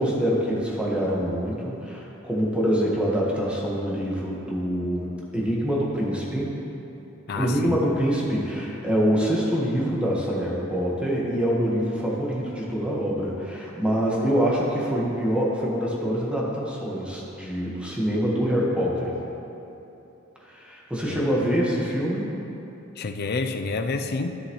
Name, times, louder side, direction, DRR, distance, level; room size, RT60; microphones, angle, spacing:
voice 1, 0.0-6.5 7.3-19.1 20.5-22.3, equal, 5° right, -5 dB, 1.4 m, -25 dB
voice 2, 7.3-7.8 21.1-21.3 23.0-24.4, left 3 dB, 50° left, 7 dB, 0.5 m, -29 dB
13.0 x 7.1 x 3.1 m, 2.9 s
head